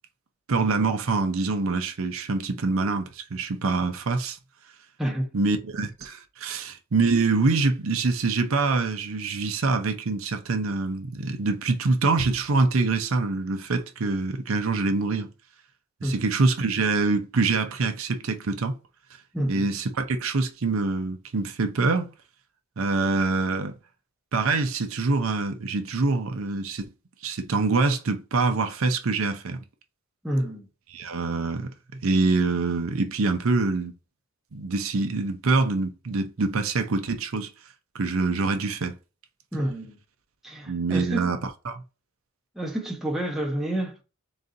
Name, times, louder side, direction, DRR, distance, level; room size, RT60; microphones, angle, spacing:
voice 1, 0.5-4.4 5.3-15.3 16.0-18.8 19.5-22.1 22.8-23.7 24.3-26.9 27.2-29.6 30.9-31.7 32.0-33.9 34.5-37.5 37.9-38.9 40.7-41.4 41.7-41.8, right 3 dB, 70° right, 0.6 m, -25 dB
voice 2, 5.0-5.3 16.0-16.3 19.3-19.7 30.2-30.7 39.5-40.0 40.4-41.3 42.5-44.0, right 1 dB, ahead, 0.9 m, -29 dB
3.9 x 2.7 x 3.8 m
head